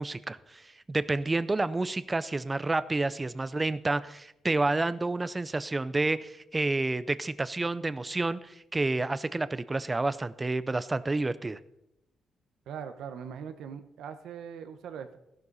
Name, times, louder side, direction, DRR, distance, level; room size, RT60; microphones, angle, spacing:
voice 1, 0.0-11.6, right 2 dB, 20° right, 15 dB, 0.5 m, -29 dB
voice 2, 12.7-15.2, right 7 dB, 85° right, 9 dB, 1.1 m, -41 dB
14.5 x 12.0 x 4.1 m, 0.85 s
cardioid pair, 125°, 0 cm